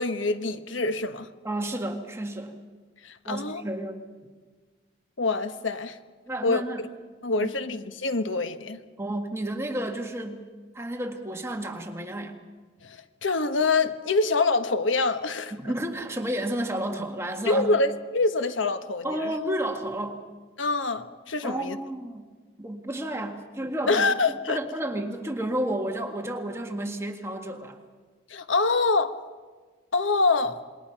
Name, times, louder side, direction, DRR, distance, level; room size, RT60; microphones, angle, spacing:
voice 1, 0.0-1.3 3.0-3.6 5.2-6.0 6.4-6.6 7.2-8.8 12.8-15.5 17.4-19.3 20.6-21.8 23.9-24.6 28.3-29.1 29.9-30.6, left 3 dB, 80° left, 10 dB, 1.3 m, -25 dB
voice 2, 1.4-2.5 3.3-4.1 6.3-6.9 7.3-7.5 9.0-10.4 10.7-12.4 15.5-17.7 19.0-20.2 21.4-22.2 22.6-24.1 24.5-27.8, right 1 dB, 15° right, 4 dB, 1.8 m, -31 dB
27.0 x 22.0 x 5.9 m, 1.4 s
head